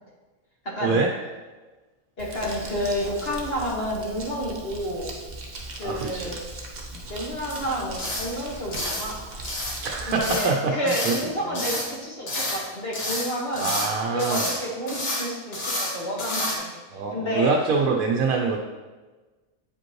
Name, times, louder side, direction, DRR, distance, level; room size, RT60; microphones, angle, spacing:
voice 1, 0.6-1.0 2.2-5.1 5.8-6.4 7.1-9.3 10.1-13.8 14.1-16.7 17.1-17.5, equal, 45° left, -4 dB, 1.7 m, -30 dB
Crumpling crinkling, 2.2-10.3, right 2 dB, 45° right, 1.2 m, -38 dB
voice 2, 5.8-6.3 9.8-11.2 13.5-14.5 16.9-18.6, right 4 dB, 80° right, 1 dB, 1.1 m, -25 dB
sound 1, 7.5-7.7 8.0-8.3 8.7-9.1 9.4-9.8 10.2-10.6 10.9-11.3 11.5-11.9 12.3-12.7 12.9-13.9 14.2-14.6 14.9-15.3 15.5-15.9 16.2-16.6, left 1 dB, 70° left, 1.9 m, -29 dB
9.0 x 5.1 x 3.1 m, 1.3 s
omnidirectional pair, 1.4 m